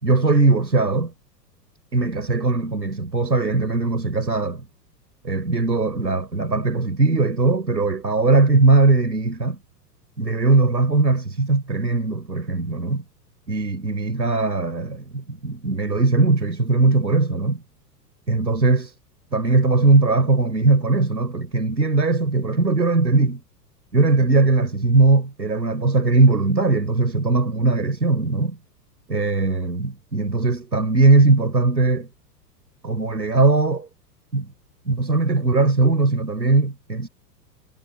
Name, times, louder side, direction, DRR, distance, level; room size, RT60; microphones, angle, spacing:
voice 1, 0.0-1.1 1.9-4.7 5.2-9.6 10.2-13.0 13.5-17.6 18.3-18.9 19.3-23.4 23.9-28.6 29.1-32.1 32.8-33.9 34.3-34.5 34.9-37.1, right 3 dB, 80° right, 4.7 m, -19 dB
figure-of-eight pair, 95°, 49 cm